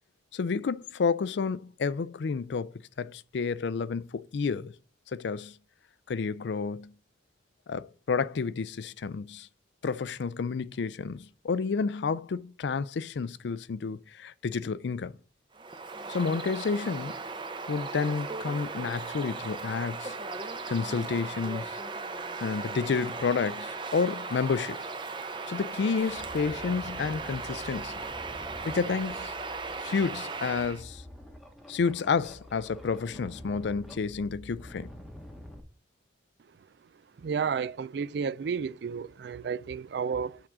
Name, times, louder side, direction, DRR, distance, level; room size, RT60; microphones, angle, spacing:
voice 1, 0.3-4.7 5.1-5.6 6.1-6.9 7.7-9.5 9.8-15.1 16.1-17.1 17.7-20.1 20.7-21.8 22.4-24.9 25.5-28.0 28.6-29.3 29.8-31.0 31.7-34.9, left 5 dB, 70° left, 0.4 m, -30 dB
Bird vocalization bird call bird song, 15.5-30.8, right 4 dB, 25° right, 0.7 m, -37 dB
sound 1, 25.2-25.3 25.7-35.6, equal, ahead, 1.0 m, -47 dB
voice 2, 37.2-40.4, right 6 dB, 65° right, 0.3 m, -32 dB
7.2 x 3.7 x 6.1 m
head